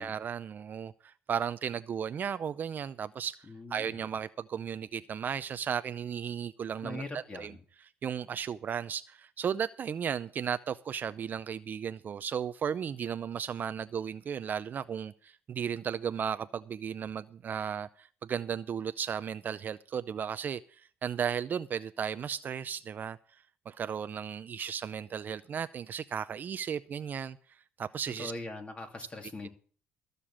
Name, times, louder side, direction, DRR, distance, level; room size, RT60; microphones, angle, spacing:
voice 1, 0.0-3.4 3.7-7.6 8.0-23.2 23.7-27.4 27.8-28.3, right 7 dB, 40° right, 0.5 m, -35 dB
voice 2, 3.5-3.9 6.8-7.6 28.2-29.5, left 2 dB, 25° left, 2.8 m, -41 dB
14.5 x 6.7 x 7.3 m
cardioid pair, 110°, 5 cm